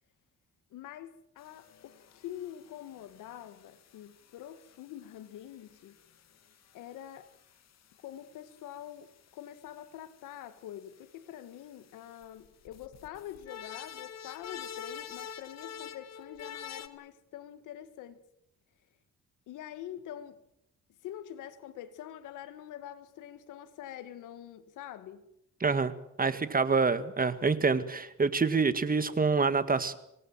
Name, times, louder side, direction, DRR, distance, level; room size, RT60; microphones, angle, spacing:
voice 1, 0.7-6.0 6.7-7.3 8.0-18.2 19.5-20.4 21.0-25.3, left 11 dB, 90° left, 2.0 m, -45 dB
sound 1, 1.4-9.6 10.0-10.3 10.5-10.6 10.9-11.2 11.6-16.9, left 8 dB, 60° left, 2.1 m, -47 dB
voice 2, 25.6-25.9 26.2-29.9, right 4 dB, 30° right, 1.9 m, -26 dB
26.5 x 19.0 x 7.6 m
cardioid pair, 90°, 30 cm